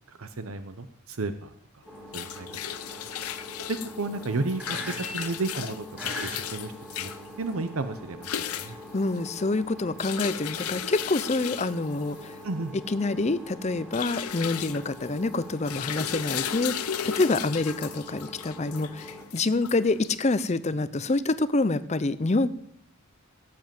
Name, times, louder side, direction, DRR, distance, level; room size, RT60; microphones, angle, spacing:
voice 1, 0.1-1.8 2.1-2.6 3.3-6.7 7.0-7.1 7.4-8.8 12.4-12.7, right 3 dB, 65° right, 10 dB, 0.8 m, -33 dB
sound 1, 1.8-20.4, left 9 dB, 80° left, 0.8 m, -36 dB
sound 2, 1.9-19.3, equal, 5° right, 2.5 m, -43 dB
voice 2, 8.9-12.4 12.9-22.5, left 2 dB, 30° left, 15 dB, 0.5 m, -27 dB
17.0 x 7.6 x 7.6 m, 0.70 s
head